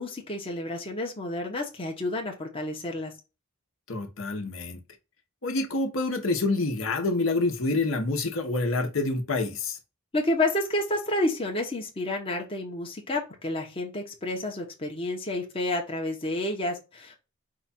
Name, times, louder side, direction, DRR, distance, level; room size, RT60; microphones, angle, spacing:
voice 1, 0.0-3.1 10.1-17.2, left 1 dB, 25° left, 0.8 m, -30 dB
voice 2, 3.9-4.8 5.4-9.8, left 2 dB, 65° left, 1.0 m, -27 dB
4.8 x 2.4 x 4.0 m
head